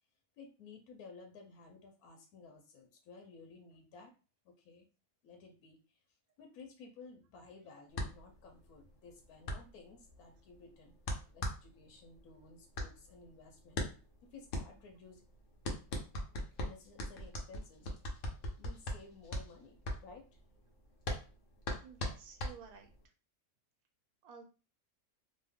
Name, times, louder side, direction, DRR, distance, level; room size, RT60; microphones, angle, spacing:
voice 1, 0.4-4.1 4.4-4.9 5.2-6.0 6.4-10.9 11.3-13.8 14.2-15.2 16.6-17.9 18.6-20.3, left 4 dB, 80° left, 3 dB, 1.1 m, -55 dB
sound 1, 7.9-23.0, left 1 dB, 65° left, 1.0 m, -41 dB
voice 2, 21.8-22.9 24.2-24.4, right 6 dB, 85° right, 4 dB, 1.1 m, -53 dB
3.0 x 2.1 x 3.4 m, 0.34 s
omnidirectional pair, 1.6 m